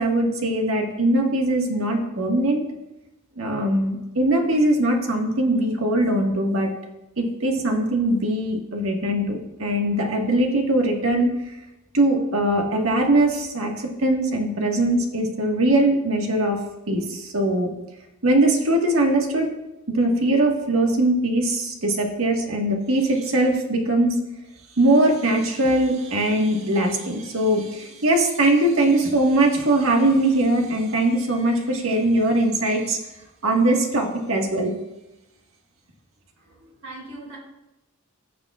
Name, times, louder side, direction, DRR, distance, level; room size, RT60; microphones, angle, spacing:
voice 1, 0.0-2.6 3.4-6.7 7.2-11.3 11.9-16.6 16.9-17.7 18.2-19.5 19.9-24.2 24.8-33.0 33.4-34.7, right 1 dB, 65° right, 1 dB, 1.6 m, -21 dB
voice 2, 36.4-37.4, right 2 dB, 90° right, -3 dB, 3.4 m, -41 dB
15.0 x 6.8 x 2.4 m, 0.96 s
head